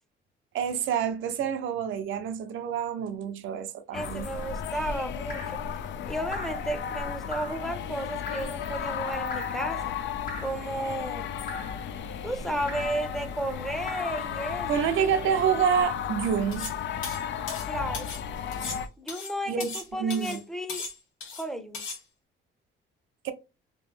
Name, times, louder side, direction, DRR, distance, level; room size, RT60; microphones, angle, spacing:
voice 1, 0.5-4.3 14.7-16.7 19.5-20.4 23.2-23.3, right 8 dB, 80° right, 0.6 m, -27 dB
sound 1, 3.9-18.9, left 8 dB, 65° left, 0.4 m, -34 dB
voice 2, 3.9-5.6 6.1-9.9 10.4-11.4 12.2-14.7 17.7-18.1 19.0-20.9 21.4-21.8, right 1 dB, ahead, 0.6 m, -33 dB
Drip, 5.3-5.6 6.3-6.7 7.3-7.7 8.3-8.6 9.3-9.6 10.3-10.6 11.5-11.8 12.7-13.0 13.9-14.2 15.1-15.5 16.4-16.5, left 2 dB, 45° left, 0.8 m, -41 dB
sound 2, 16.5-16.8 17.0-18.2 18.5-19.9 20.1-20.4 20.7-21.4 21.7-22.0, left 4 dB, 85° left, 1.0 m, -37 dB
3.0 x 2.7 x 3.3 m
cardioid pair, 90°, 20 cm